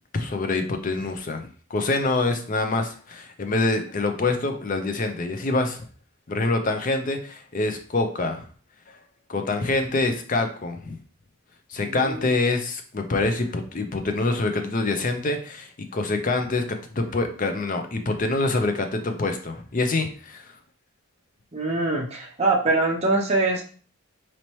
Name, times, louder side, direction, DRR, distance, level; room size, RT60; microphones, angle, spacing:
voice 1, 0.1-5.8 6.3-8.4 9.3-11.0 11.7-16.6 16.9-20.5, left 3 dB, 35° left, 6 dB, 0.5 m, -25 dB
voice 2, 11.9-12.3 21.5-23.6, right 2 dB, 30° right, -1 dB, 0.6 m, -23 dB
4.2 x 2.8 x 3.0 m, 0.43 s
head